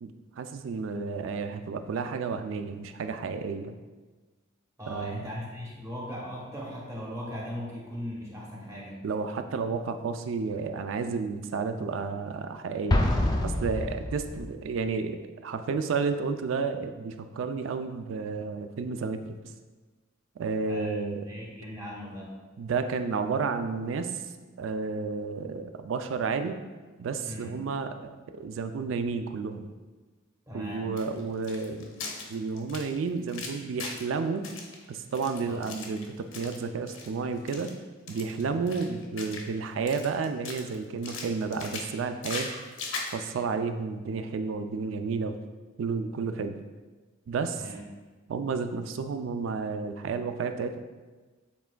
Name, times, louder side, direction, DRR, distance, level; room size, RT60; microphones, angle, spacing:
voice 1, 0.0-3.7 4.9-5.3 9.0-13.0 13.4-19.3 20.4-21.3 22.6-24.3 24.6-26.6 27.0-29.7 30.5-31.9 32.3-34.5 34.9-37.7 38.1-42.5 43.1-45.4 45.8-46.6 47.3-47.7 48.3-50.8, right 4 dB, 70° right, 8 dB, 0.3 m, -31 dB
voice 2, 4.8-9.0 20.7-21.0 21.2-22.3 27.2-27.5 30.5-30.9 35.4-35.6 38.5-38.9 47.6-47.8, equal, 15° right, -4 dB, 0.9 m, -39 dB
Explosion, 12.9-14.6, left 1 dB, 20° left, 0.3 m, -26 dB
sound 1, 31.0-34.1 34.4-36.6 36.9-37.1 37.4-37.7 38.1-39.6 39.9-40.7 41.0-43.2, left 3 dB, 75° left, 0.7 m, -39 dB
7.1 x 3.4 x 2.2 m, 1.3 s
head